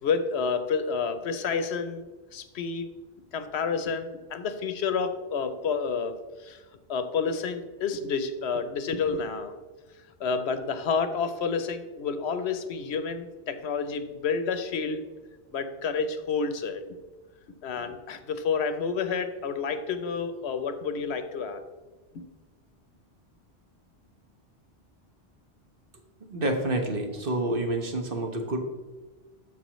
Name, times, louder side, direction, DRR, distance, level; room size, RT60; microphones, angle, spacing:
voice 1, 0.0-2.1 2.3-2.9 3.3-6.1 6.4-6.6 6.9-9.6 10.2-15.0 15.5-16.8 17.6-21.6, left 5 dB, 75° left, 10 dB, 1.0 m, -29 dB
voice 2, 26.3-28.6, right 1 dB, 55° right, 2 dB, 1.3 m, -28 dB
13.5 x 5.0 x 3.1 m, 1.3 s
omnidirectional pair, 1.1 m